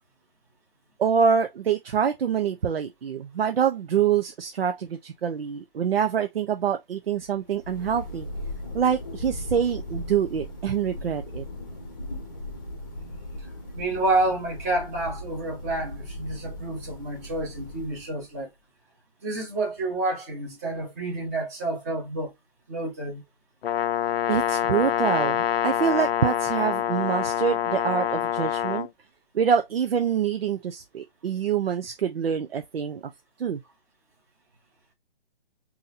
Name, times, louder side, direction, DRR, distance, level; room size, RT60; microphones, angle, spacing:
voice 1, 1.0-8.3 8.7-11.4 24.3-28.9 29.3-33.0 33.4-33.6, right 7 dB, 90° right, 0.7 m, -25 dB
Thunder, 7.3-18.3, left 1 dB, 20° left, 0.8 m, -38 dB
voice 2, 13.7-18.5 19.2-22.3 22.7-23.2, right 2 dB, 15° right, 1.1 m, -29 dB
Brass instrument, 23.6-28.9, left 10 dB, 85° left, 0.5 m, -26 dB
4.0 x 2.9 x 2.6 m
hypercardioid pair, 175°, 29 cm